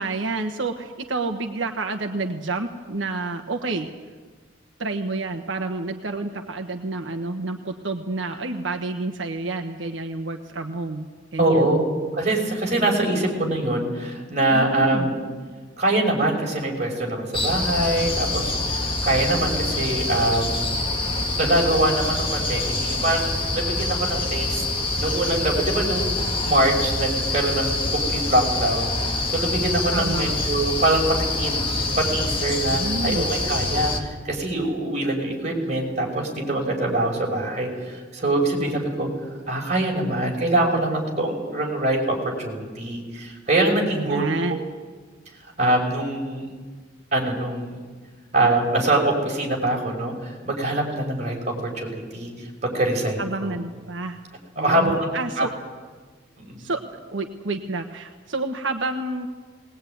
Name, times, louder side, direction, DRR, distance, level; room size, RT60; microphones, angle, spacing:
voice 1, 0.0-3.9 4.8-11.1 11.3-11.7 14.5-15.1 29.9-30.3 32.7-33.3 43.9-44.6 53.2-54.2 54.6-55.5 56.6-56.8 57.1-59.3, right 2 dB, 85° right, 3 dB, 1.4 m, -29 dB
voice 2, 11.4-15.2 15.8-20.6 21.3-23.3 23.5-24.7 25.0-29.0 29.3-31.7 32.0-39.1 39.5-44.6 45.6-46.5 47.1-47.8 48.3-53.5 54.6-55.1 55.4-55.5 56.4-56.7, right 1 dB, 40° right, -1 dB, 5.7 m, -24 dB
sound 1, 17.3-34.0, left 2 dB, 30° left, 2.0 m, -26 dB
20.0 x 20.0 x 9.4 m, 1.4 s
head